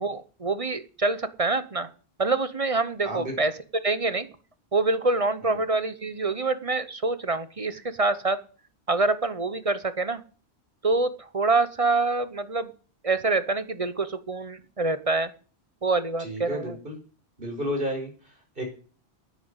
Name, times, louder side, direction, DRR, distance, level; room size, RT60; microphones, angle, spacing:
voice 1, 0.0-1.9 2.2-3.5 3.8-4.3 4.7-8.4 8.9-10.2 10.8-12.7 13.0-15.3 15.8-16.7, right 3 dB, 35° right, 13 dB, 1.0 m, -26 dB
voice 2, 3.0-3.4 5.4-5.6 16.2-17.0 17.4-18.6, equal, 55° right, 2 dB, 5.2 m, -32 dB
10.5 x 9.4 x 8.0 m, 0.40 s
omnidirectional pair, 1.1 m